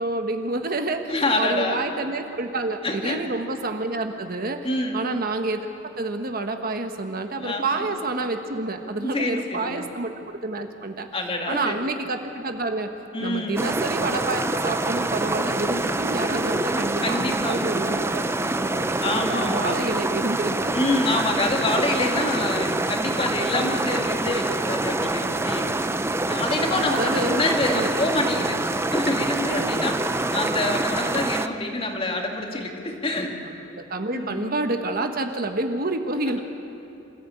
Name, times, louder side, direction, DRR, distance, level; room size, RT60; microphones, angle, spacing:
voice 1, 0.0-4.7 4.9-11.1 11.5-12.9 13.2-20.7 21.1-21.2 26.3-26.4 26.9-27.4 27.7-27.9 29.5-30.6 33.7-36.4, right 2 dB, 50° right, 5 dB, 1.3 m, -29 dB
voice 2, 1.1-1.8 2.8-3.2 4.6-5.0 7.4-7.9 8.9-9.9 11.1-11.8 13.1-13.6 16.7-17.6 19.0-19.9 20.7-25.7 26.3-28.6 28.9-30.0 30.3-33.3 34.1-34.4, left 2 dB, 30° left, 1 dB, 2.4 m, -26 dB
sound 1, 13.6-31.5, right 2 dB, 15° right, 0.6 m, -26 dB
26.5 x 14.5 x 8.5 m, 2.8 s
head